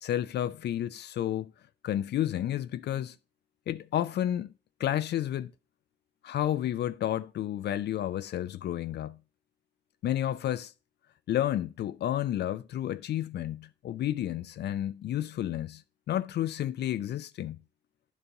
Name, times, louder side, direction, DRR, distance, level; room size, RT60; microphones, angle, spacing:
voice 1, 0.0-1.5 1.8-3.2 3.7-4.5 4.8-5.5 6.2-9.2 10.0-10.7 11.3-17.6, left 12 dB, 60° left, 0.4 m, -31 dB
10.5 x 4.1 x 3.4 m
cardioid pair, 90°, 20 cm